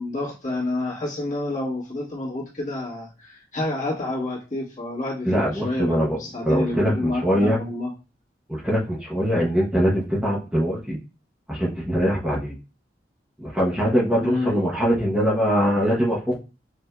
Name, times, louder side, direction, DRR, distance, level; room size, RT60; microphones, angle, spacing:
voice 1, 0.0-7.9 14.2-14.5, left 2 dB, 45° left, -4 dB, 1.4 m, -29 dB
voice 2, 5.3-6.2 6.4-7.6 8.5-11.0 11.5-12.5 13.4-16.4, equal, 5° right, -5 dB, 0.7 m, -22 dB
6.1 x 2.6 x 2.2 m, 0.32 s
head